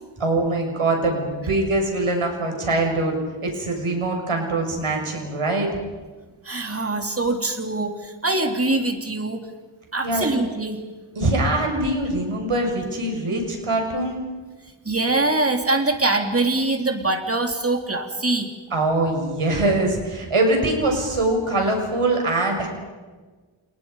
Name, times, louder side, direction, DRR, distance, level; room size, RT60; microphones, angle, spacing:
voice 1, 0.2-3.1 3.4-5.7 10.0-10.3 11.1-14.2 18.7-22.7, right 2 dB, 90° right, 2 dB, 6.7 m, -23 dB
voice 2, 6.4-9.4 9.9-10.8 14.8-18.5, right 2 dB, 30° right, 4 dB, 3.0 m, -23 dB
29.5 x 29.0 x 5.5 m, 1.3 s
wide cardioid pair, 95°, 49 cm